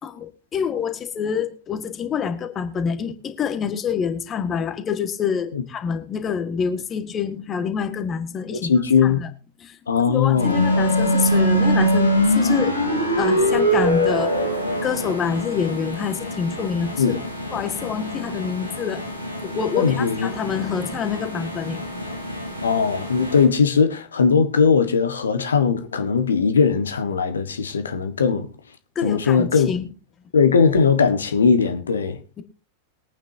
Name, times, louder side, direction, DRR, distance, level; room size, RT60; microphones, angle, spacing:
voice 1, 0.0-8.7 9.0-9.3 9.6-9.8 10.1-12.8 13.2-14.3 14.8-17.0 17.5-19.0 19.4-22.0 22.5-22.6 29.0-29.9 32.4-32.5, left 7 dB, 25° left, 1.8 m, -26 dB
voice 2, 8.5-9.2 9.9-10.7 17.0-17.2 19.7-20.3 22.6-28.5 29.0-29.7 30.3-32.2, left 5 dB, 70° left, 1.5 m, -19 dB
sound 1, 10.3-23.4, equal, 90° left, 4.0 m, -23 dB
22.5 x 9.1 x 2.8 m
figure-of-eight pair, 90°, 0 cm